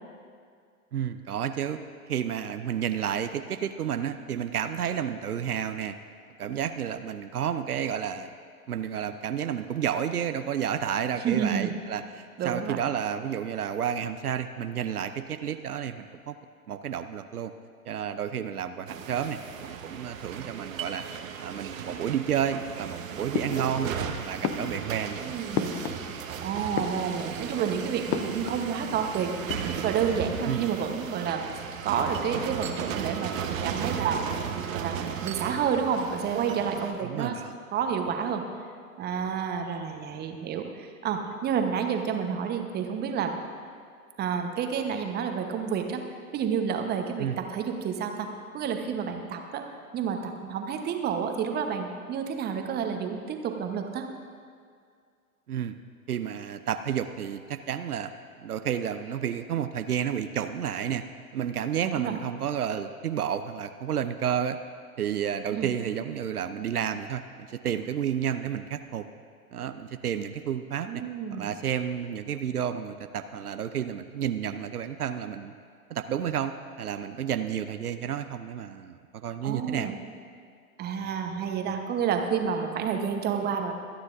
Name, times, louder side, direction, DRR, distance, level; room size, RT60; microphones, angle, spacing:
voice 1, 0.9-1.8 2.1-6.0 6.4-8.3 8.7-16.4 16.7-17.5 17.9-21.0 21.4-25.2 30.5-30.6 37.0-37.5 47.2-47.4 55.5-55.8 56.1-58.1 58.4-61.0 61.3-64.6 65.0-69.0 69.5-71.0 71.3-75.5 75.9-76.5 76.8-79.9, right 9 dB, 80° right, 9 dB, 0.7 m, -31 dB
voice 2, 11.2-11.8 12.4-12.8 25.2-25.8 26.4-29.3 29.7-33.3 33.6-34.2 34.7-37.3 37.7-38.4 39.0-43.4 44.2-46.0 46.3-48.3 48.5-49.6 49.9-54.1 61.8-62.2 65.5-65.7 70.9-71.5 79.4-80.0 80.8-83.7, right 7 dB, 20° right, 5 dB, 1.0 m, -29 dB
sound 1, 18.9-36.9, right 7 dB, 60° right, 1.2 m, -36 dB
sound 2, 23.3-24.1 24.4-26.3 26.6-27.5 28.1-28.7 29.0-29.1 29.3-30.1, left 8 dB, 20° left, 0.4 m, -33 dB
25.5 x 9.4 x 2.6 m, 2.2 s
figure-of-eight pair, 100°, 44 cm